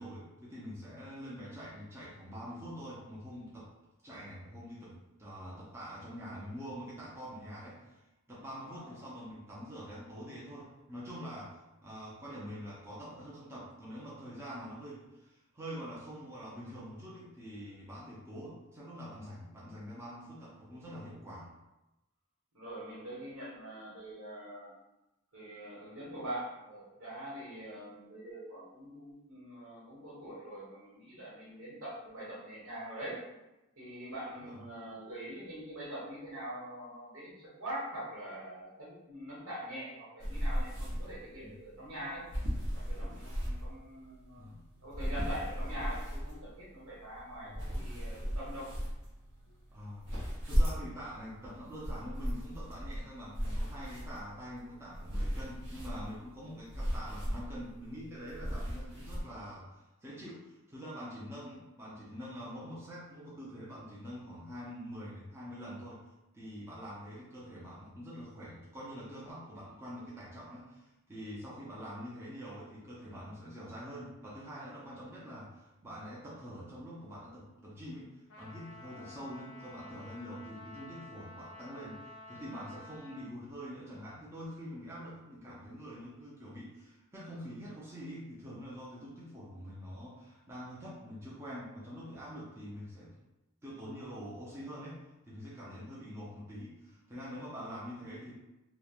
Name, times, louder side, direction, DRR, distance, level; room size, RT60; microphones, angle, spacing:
voice 1, 0.0-3.7 4.0-8.0 8.3-21.5 34.4-34.6 41.4-41.5 44.4-44.6 47.4-47.6 49.7-50.1 50.4-59.7 60.0-66.0 66.3-78.1 78.4-93.1 93.6-98.3, equal, 10° right, -8 dB, 0.5 m, -45 dB
voice 2, 8.6-9.0 22.5-24.7 25.3-33.2 33.8-42.3 42.9-44.4 44.8-48.7 78.8-79.2, right 1 dB, 80° right, -6 dB, 1.1 m, -44 dB
sound 1, 40.2-59.2, equal, 55° right, 0.7 m, -37 dB
Trumpet, 78.3-83.3, left 1 dB, 60° left, 0.3 m, -51 dB
3.0 x 2.1 x 2.3 m, 0.98 s
head